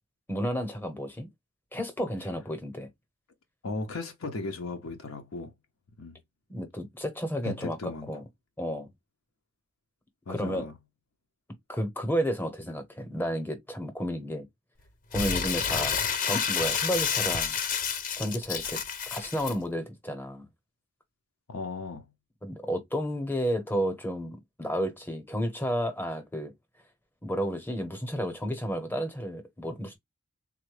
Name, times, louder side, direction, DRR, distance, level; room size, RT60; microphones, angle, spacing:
voice 1, 0.3-1.3 1.7-2.9 6.5-8.2 8.6-8.9 10.3-10.7 11.7-14.5 15.1-16.0 16.2-17.6 18.1-18.8 19.1-20.5 22.4-26.5 27.2-30.0, equal, 10° left, 0.8 m, -32 dB
voice 2, 3.6-5.5 6.0-6.2 7.4-8.1 10.3-10.7 21.5-22.1, left 3 dB, 80° left, 0.7 m, -36 dB
Crumpling crinkling, 15.1-19.5, left 6 dB, 40° left, 0.5 m, -29 dB
3.6 x 2.1 x 3.1 m
head